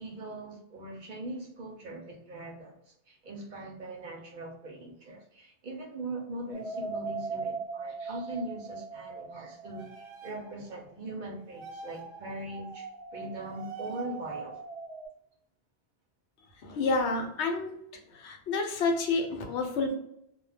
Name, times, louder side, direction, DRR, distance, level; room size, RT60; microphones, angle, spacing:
voice 1, 0.0-14.6, right 1 dB, 55° right, 0 dB, 0.6 m, -41 dB
sound 1, 6.5-10.7 11.5-15.1, right 4 dB, 85° right, 0.9 m, -40 dB
voice 2, 16.6-17.7 18.1-19.9, left 3 dB, 90° left, 3 dB, 0.9 m, -29 dB
2.2 x 2.0 x 3.2 m, 0.77 s
omnidirectional pair, 1.1 m